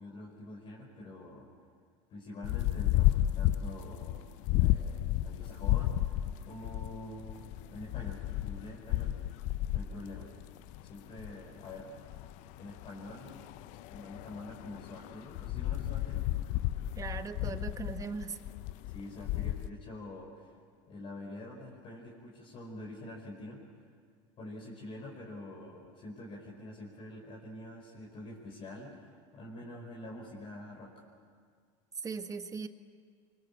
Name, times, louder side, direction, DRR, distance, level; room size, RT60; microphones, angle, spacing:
voice 1, 0.0-1.5 2.1-4.2 4.6-6.2 6.4-9.2 9.7-10.3 10.8-11.9 12.5-13.5 13.9-16.2 18.9-20.5 20.9-23.6 24.4-31.0, left 1 dB, 40° left, -3 dB, 5.1 m, -46 dB
sound 1, 2.4-19.7, left 14 dB, 60° left, 0.6 m, -33 dB
voice 2, 17.0-18.4 32.0-32.7, right 5 dB, 25° right, 8 dB, 1.5 m, -39 dB
25.5 x 24.5 x 8.6 m, 2.1 s
supercardioid pair, 115°, 14 cm